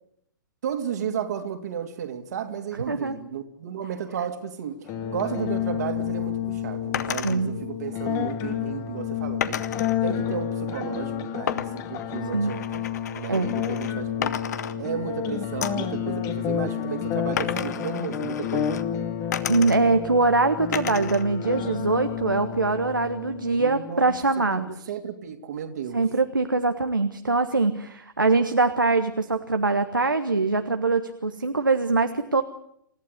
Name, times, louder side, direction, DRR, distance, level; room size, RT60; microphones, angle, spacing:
voice 1, 0.6-9.7 10.0-12.9 13.1-14.4 14.8-18.8 23.5-24.2 24.5-26.0, right 8 dB, 55° right, 3.0 m, -33 dB
voice 2, 2.9-3.2 7.2-7.5 12.3-12.5 13.3-13.5 19.5-24.7 25.9-32.4, right 3 dB, 80° right, 1.5 m, -23 dB
sound 1, 4.9-23.8, left 9 dB, 30° left, 2.0 m, -30 dB
sound 2, 6.9-7.4 9.4-10.0 11.5-13.9 14.2-15.2 15.6-15.9 17.4-18.8 19.3-20.1 20.7-21.3 21.6-22.4, left 9 dB, 55° left, 1.6 m, -33 dB
28.5 x 15.0 x 9.9 m
figure-of-eight pair, 110°, 11 cm